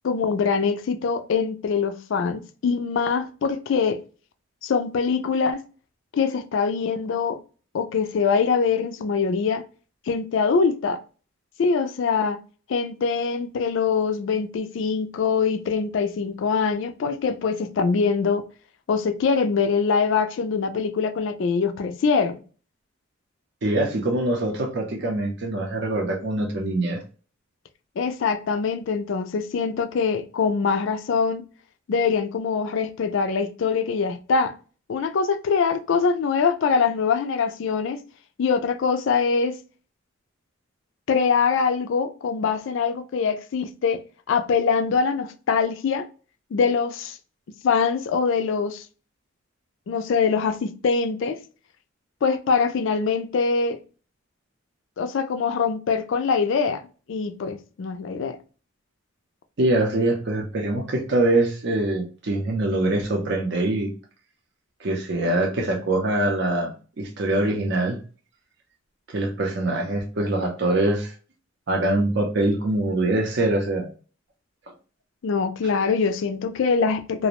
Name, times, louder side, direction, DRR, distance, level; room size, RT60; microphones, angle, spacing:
voice 1, 0.0-4.0 4.6-5.6 6.1-7.4 7.7-9.6 10.1-11.0 11.6-12.4 12.7-18.5 18.9-22.4 28.0-31.4 31.9-34.5 34.9-38.0 38.4-39.5 41.1-44.0 44.3-46.1 46.5-47.2 47.6-48.8 49.9-51.4 52.2-53.8 55.0-56.8 57.1-58.4 75.2-77.3, left 5 dB, 65° left, 0.3 m, -23 dB
voice 2, 23.6-27.0 59.6-63.9 64.8-68.0 69.1-71.1 71.7-73.9, right 2 dB, 55° right, 0.5 m, -24 dB
2.5 x 2.0 x 2.9 m
head